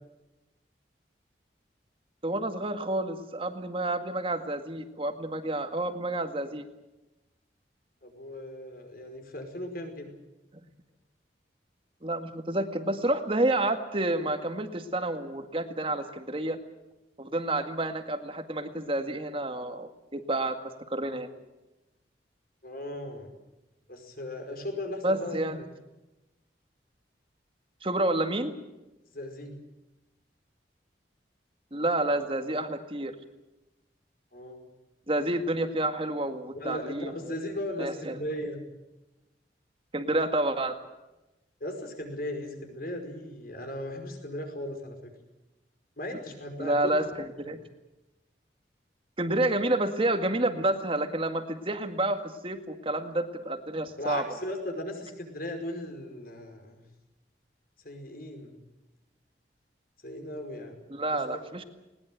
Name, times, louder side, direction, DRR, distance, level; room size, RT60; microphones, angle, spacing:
voice 1, 2.2-6.7 12.0-16.6 17.2-20.6 20.9-21.3 25.0-25.6 27.8-28.5 31.7-33.1 35.1-37.3 37.8-38.2 39.9-40.7 46.6-47.6 49.2-54.2 60.9-61.6, right 1 dB, 30° right, 7 dB, 2.0 m, -29 dB
voice 2, 8.0-10.1 22.6-23.3 23.9-25.7 29.1-29.5 34.3-34.6 36.6-38.6 41.6-45.1 46.0-47.1 54.0-56.8 57.8-58.6 60.0-60.8 61.1-61.4, left 1 dB, 55° left, 5 dB, 5.2 m, -37 dB
20.5 x 20.0 x 9.3 m, 0.99 s
head